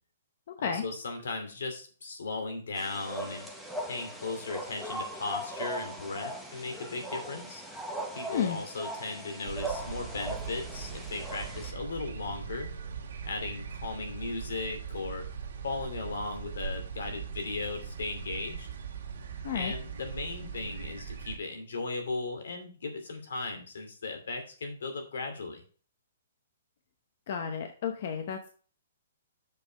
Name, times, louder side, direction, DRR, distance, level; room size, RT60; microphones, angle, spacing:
voice 1, 0.6-3.5 3.9-7.6 8.1-12.7 13.2-15.3 15.6-18.7 19.5-25.6, left 3 dB, 75° left, 5 dB, 2.5 m, -37 dB
sound 1, 2.8-11.7, right 1 dB, ahead, 0.7 m, -39 dB
sound 2, 9.5-21.4, right 7 dB, 50° right, 1.6 m, -40 dB
voice 2, 27.3-28.5, left 7 dB, 35° left, 5 dB, 0.8 m, -32 dB
6.7 x 5.5 x 5.0 m, 0.40 s
hypercardioid pair, 180°, 0 cm